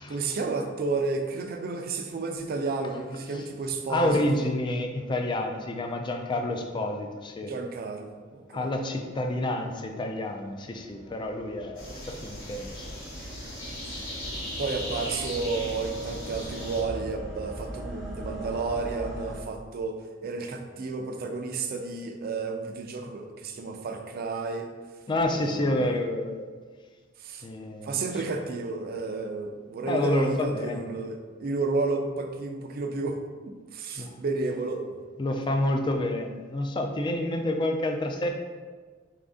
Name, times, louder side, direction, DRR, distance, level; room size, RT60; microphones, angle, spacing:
voice 1, 0.1-4.5 7.5-8.7 14.6-24.7 25.3-26.0 27.2-27.5 27.8-35.0, right 3 dB, 50° right, 5 dB, 0.4 m, -32 dB
voice 2, 3.9-7.5 8.5-12.9 25.1-26.5 27.4-28.0 28.3-28.4 29.9-30.9 34.0-34.2 35.2-38.3, left 1 dB, 25° left, 3 dB, 0.3 m, -29 dB
sound 1, 9.7-19.4, equal, ahead, 0.9 m, -41 dB
sound 2, 11.7-16.8, left 1 dB, 70° left, 1.0 m, -38 dB
4.1 x 2.5 x 3.5 m, 1.5 s
head